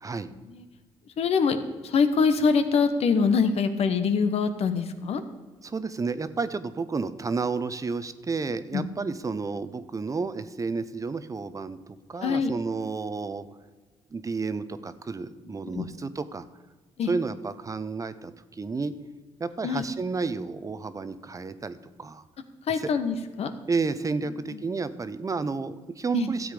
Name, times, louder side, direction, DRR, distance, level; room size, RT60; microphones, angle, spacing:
voice 1, 0.3-0.7 1.2-5.2 8.7-8.9 12.2-12.5 15.7-15.9 17.0-17.1 19.6-19.8 22.7-23.5 24.5-24.6 26.1-26.3, left 5 dB, 65° left, 9 dB, 1.1 m, -24 dB
voice 2, 5.6-13.4 14.1-16.5 17.1-18.9 19.4-22.2 22.8-22.9 23.7-26.5, right 4 dB, 30° right, 13 dB, 0.7 m, -31 dB
13.0 x 8.0 x 5.0 m, 1.3 s
cardioid pair, 80°, 12 cm